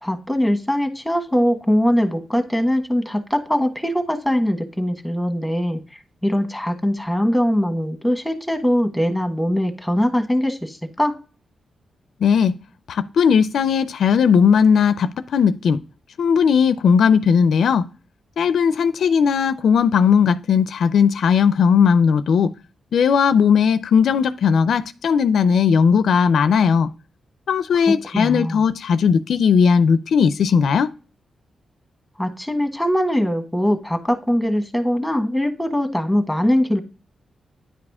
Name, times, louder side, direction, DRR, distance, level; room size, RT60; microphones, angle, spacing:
voice 1, 0.0-5.8 6.2-11.1 28.1-28.6 32.2-36.8, equal, ahead, 1.4 m, -21 dB
voice 2, 12.2-12.6 12.9-15.8 16.2-17.9 18.4-22.5 22.9-26.9 27.5-30.9, left 6 dB, 75° left, 0.4 m, -17 dB
10.0 x 4.9 x 3.6 m
wide cardioid pair, 120°, 0 cm